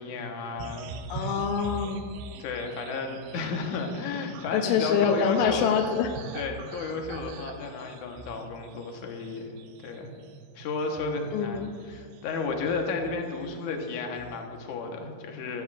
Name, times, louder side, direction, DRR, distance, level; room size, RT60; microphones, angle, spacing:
voice 1, 0.0-1.4 2.1-5.7 6.3-9.5 9.8-10.1 10.6-15.6, left 4 dB, 65° left, 2 dB, 2.3 m, -33 dB
sound 1, 0.6-13.7 14.0-14.7, right 5 dB, 85° right, 2.7 m, -43 dB
voice 2, 1.1-2.1 4.5-6.1 11.3-11.7, left 6 dB, 85° left, 5 dB, 2.0 m, -25 dB
15.0 x 13.5 x 2.5 m, 2.1 s
omnidirectional pair, 4.4 m